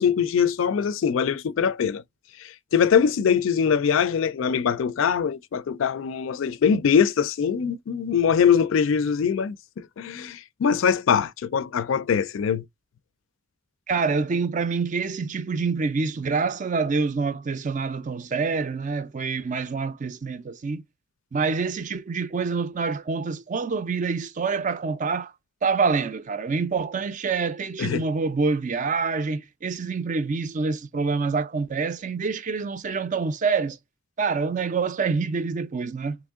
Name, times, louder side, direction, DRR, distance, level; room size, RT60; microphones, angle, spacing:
voice 1, 0.0-2.0 2.4-12.6 27.8-28.0, left 7 dB, 75° left, 0.4 m, -22 dB
voice 2, 13.9-20.8 21.3-25.3 25.6-33.8 34.2-36.2, right 4 dB, 40° right, 0.4 m, -26 dB
3.5 x 3.0 x 3.5 m
head